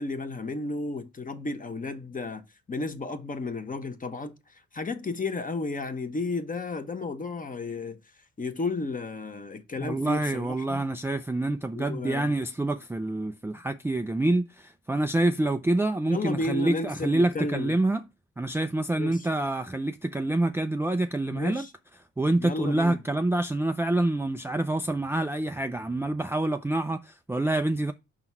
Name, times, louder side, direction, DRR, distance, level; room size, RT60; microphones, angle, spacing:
voice 1, 0.0-2.4 2.7-8.0 8.4-10.8 11.7-12.3 16.1-17.8 19.0-19.3 21.3-21.7 22.4-23.0, left 3 dB, 25° left, 1.0 m, -33 dB
voice 2, 9.8-18.0 18.4-21.7 22.2-27.9, right 2 dB, 10° right, 0.4 m, -27 dB
5.5 x 3.9 x 6.0 m
cardioid pair, 85°, 31 cm